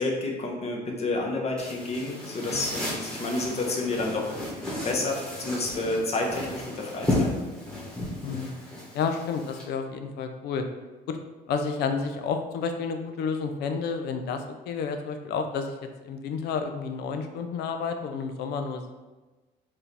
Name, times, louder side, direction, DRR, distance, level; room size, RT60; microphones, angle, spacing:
voice 1, 0.0-4.3 4.8-7.3, left 2 dB, 40° left, 0 dB, 0.9 m, -29 dB
sound 1, 1.6-9.6, left 1 dB, 5° left, 1.3 m, -33 dB
voice 2, 8.2-8.5 8.9-10.7 11.1-11.2 11.5-15.8 16.0-18.9, left 5 dB, 75° left, 6 dB, 0.5 m, -30 dB
4.6 x 2.8 x 3.3 m, 1.2 s
cardioid pair, 110°, 17 cm